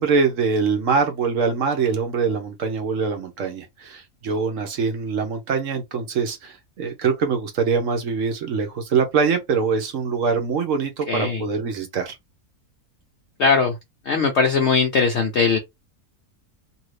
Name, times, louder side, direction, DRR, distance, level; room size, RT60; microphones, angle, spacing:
voice 1, 0.0-12.2, right 5 dB, 60° right, 1.0 m, -23 dB
voice 2, 11.1-11.4 13.4-13.7 14.1-15.6, left 5 dB, 70° left, 0.6 m, -19 dB
2.7 x 2.6 x 3.1 m
omnidirectional pair, 1.7 m